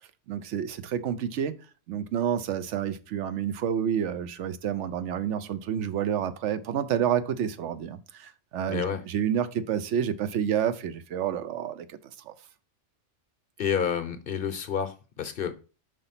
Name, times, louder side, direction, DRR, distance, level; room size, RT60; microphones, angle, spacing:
voice 1, 0.3-1.6 1.9-12.0 12.3-12.4, right 9 dB, 75° right, 0.9 m, -29 dB
voice 2, 8.7-9.0 13.6-15.5, left 7 dB, 55° left, 0.8 m, -29 dB
5.3 x 4.0 x 5.7 m
omnidirectional pair, 1.3 m